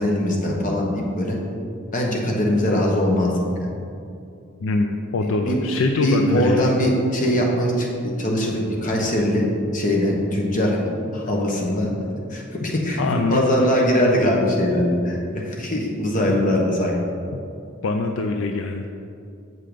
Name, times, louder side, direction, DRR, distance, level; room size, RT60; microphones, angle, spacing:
voice 1, 0.0-1.4 1.9-3.3 3.6-3.7 5.2-5.6 6.0-9.5 9.7-10.8 11.1-11.9 12.3-17.0, left 1 dB, 40° left, -1 dB, 1.2 m, -21 dB
voice 2, 4.6-6.7 13.0-13.4 16.3-16.4 17.3-17.5 17.8-18.9, left 3 dB, 70° left, 4 dB, 0.4 m, -23 dB
7.7 x 5.7 x 5.0 m, 2.5 s
head